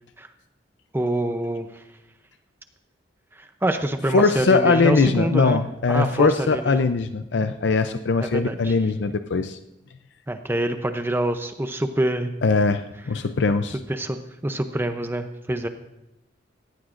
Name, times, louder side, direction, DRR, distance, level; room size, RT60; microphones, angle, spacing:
voice 1, 0.9-1.8 3.4-5.6 5.9-6.8 8.2-8.8 10.3-12.3 13.9-15.7, right 1 dB, 10° right, 7 dB, 0.6 m, -26 dB
voice 2, 4.1-9.6 12.4-13.8, left 4 dB, 70° left, 9 dB, 0.5 m, -21 dB
18.5 x 15.5 x 2.5 m, 0.88 s
head